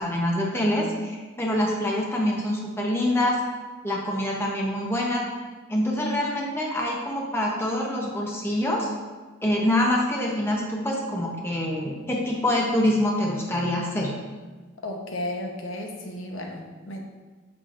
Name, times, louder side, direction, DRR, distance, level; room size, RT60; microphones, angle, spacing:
voice 1, 0.0-3.4 3.8-5.3 5.7-8.9 9.4-14.1, left 1 dB, 10° left, -2 dB, 0.8 m, -25 dB
voice 2, 14.8-17.0, left 1 dB, 80° left, 1 dB, 0.8 m, -33 dB
6.7 x 5.9 x 2.5 m, 1.3 s
head